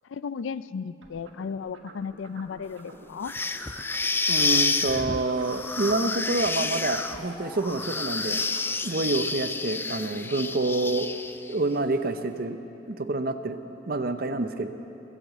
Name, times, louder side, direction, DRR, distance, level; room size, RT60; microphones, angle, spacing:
voice 1, 0.1-3.3, left 6 dB, 90° left, 16 dB, 0.4 m, -35 dB
sound 1, 1.0-4.7 4.9-8.7, right 2 dB, 80° right, 1.6 m, -48 dB
sound 2, 3.2-11.5, left 3 dB, 10° left, 0.4 m, -29 dB
voice 2, 4.3-8.4 8.8-11.1 11.5-12.6 12.9-14.7, right 2 dB, 50° right, 9 dB, 0.7 m, -27 dB
22.0 x 8.0 x 7.6 m, 3.0 s
head